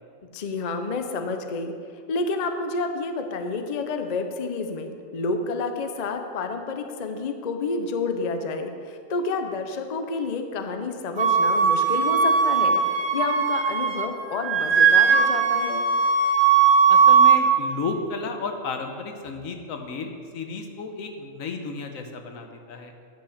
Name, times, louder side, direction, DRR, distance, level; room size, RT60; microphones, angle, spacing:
voice 1, 0.3-1.7 2.1-12.8 13.1-15.9, left 3 dB, 45° left, 6 dB, 0.6 m, -29 dB
Wind instrument woodwind instrument, 11.2-14.1 14.3-17.4, right 6 dB, 55° right, 1.3 m, -19 dB
voice 2, 16.9-22.9, left 4 dB, 85° left, 5 dB, 1.3 m, -33 dB
8.9 x 5.7 x 6.5 m, 2.3 s
omnidirectional pair, 1.4 m